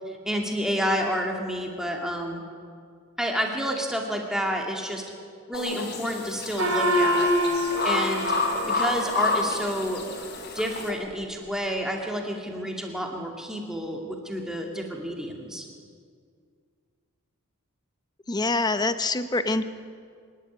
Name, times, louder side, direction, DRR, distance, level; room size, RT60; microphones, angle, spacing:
voice 1, 0.1-2.4 3.2-5.0 5.5-7.6 7.8-8.3 8.6-10.0 10.5-15.7, equal, 5° right, 1 dB, 2.4 m, -29 dB
sound 1, 5.5-10.9, left 3 dB, 50° left, 3.3 m, -29 dB
Gong, 6.6-9.5, equal, 85° right, 7.1 m, -25 dB
voice 2, 18.3-19.6, left 2 dB, 20° left, 11 dB, 0.8 m, -25 dB
25.5 x 11.0 x 9.6 m, 2.2 s
head